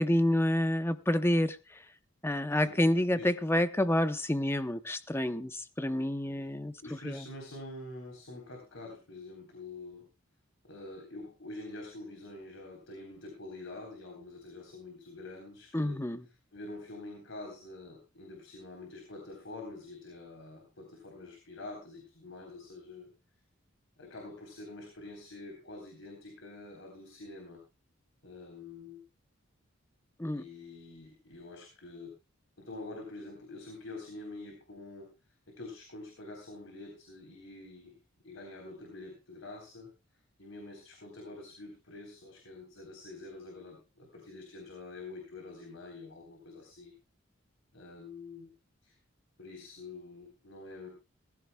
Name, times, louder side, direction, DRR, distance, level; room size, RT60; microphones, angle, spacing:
voice 1, 0.0-1.9 2.2-6.7 7.0-7.3 15.7-16.2 30.2-30.5, left 1 dB, 10° left, 0.7 m, -28 dB
voice 2, 6.8-10.1 10.6-16.0 16.5-23.1 24.0-27.6 28.2-29.0 30.3-32.1 32.6-35.1 35.5-38.0 38.2-39.9 40.4-46.9 47.7-48.5 48.8-49.0 49.4-50.9, left 2 dB, 70° left, 3.7 m, -46 dB
18.5 x 15.0 x 2.3 m
head